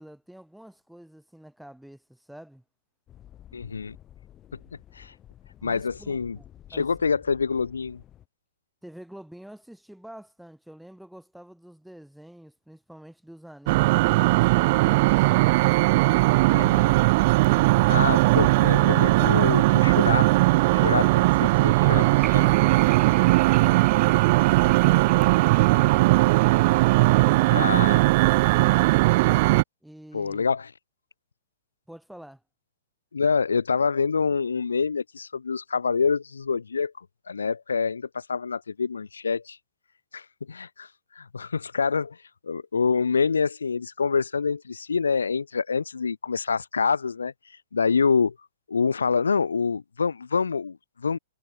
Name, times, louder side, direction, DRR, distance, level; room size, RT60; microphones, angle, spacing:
voice 1, 0.0-2.6 5.6-6.9 8.8-15.6 29.8-30.5 31.9-32.4, right 1 dB, ahead, 5.9 m, -47 dB
sound 1, 3.1-8.3, left 11 dB, 25° left, 4.0 m, -51 dB
voice 2, 3.5-3.9 4.9-5.1 5.6-6.4 6.7-8.0 16.5-17.0 17.9-20.3 20.7-22.0 22.3-22.4 27.5-28.0 30.1-30.7 33.1-36.9 37.3-39.6 40.1-40.9 41.1-42.2 42.4-47.3 47.7-48.3 48.7-51.2, left 5 dB, 75° left, 1.1 m, -26 dB
sound 2, 13.7-29.6, right 21 dB, 45° right, 0.3 m, -19 dB
sound 3, 22.2-28.2, right 9 dB, 20° right, 7.8 m, -42 dB
figure-of-eight pair, 110°, 0 cm